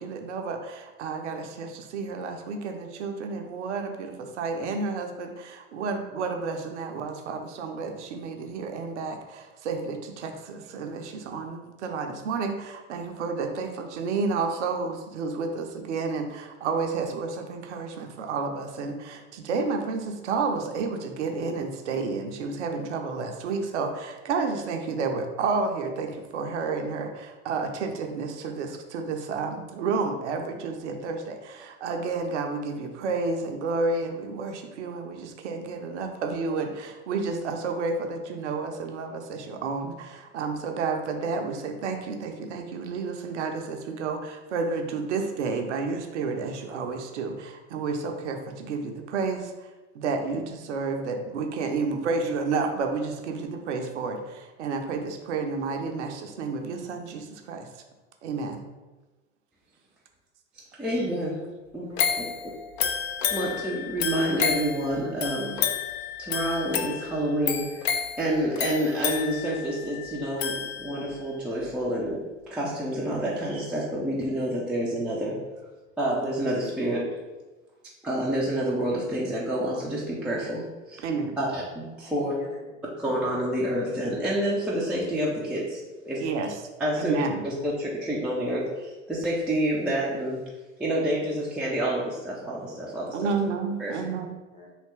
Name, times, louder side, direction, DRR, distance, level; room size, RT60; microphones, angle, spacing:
voice 1, 0.0-49.7 49.9-57.7 58.2-58.6 81.0-81.4 86.2-86.5 87.0-87.4 93.1-94.3, right 4 dB, 65° right, 4 dB, 0.6 m, -31 dB
voice 2, 60.8-61.4 61.7-62.3 63.3-65.6 66.2-75.4 76.0-77.1 78.0-82.3 83.0-86.2 86.8-90.4 90.8-93.3 93.8-93.9, right 1 dB, 5° right, -6 dB, 0.3 m, -28 dB
voice 3, 61.7-62.3 82.1-83.0 94.5-94.7, left 2 dB, 15° left, -1 dB, 0.7 m, -49 dB
sound 1, 62.0-71.2 71.7-71.8, left 7 dB, 55° left, 0.5 m, -30 dB
3.2 x 2.8 x 3.2 m, 1.2 s
figure-of-eight pair, 75°, 38 cm